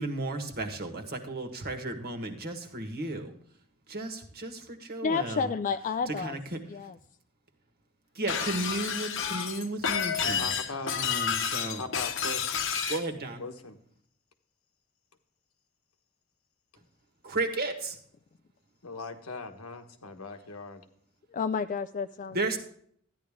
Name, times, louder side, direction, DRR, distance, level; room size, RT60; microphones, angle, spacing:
voice 1, 0.0-3.3 3.9-5.5 6.1-6.6 8.1-10.5 10.9-11.8 12.9-13.4 17.2-18.0 22.3-22.6, right 2 dB, 45° right, 4 dB, 1.6 m, -34 dB
voice 2, 5.0-6.4 6.7-7.0 21.3-22.4, left 5 dB, 35° left, 10 dB, 0.3 m, -30 dB
Shatter, 8.3-13.0, left 7 dB, 65° left, 1.0 m, -30 dB
voice 3, 10.4-11.0 11.8-12.6 13.4-13.8 18.8-20.8, left 3 dB, 85° left, 6 dB, 1.3 m, -39 dB
13.0 x 10.0 x 3.6 m, 0.64 s
head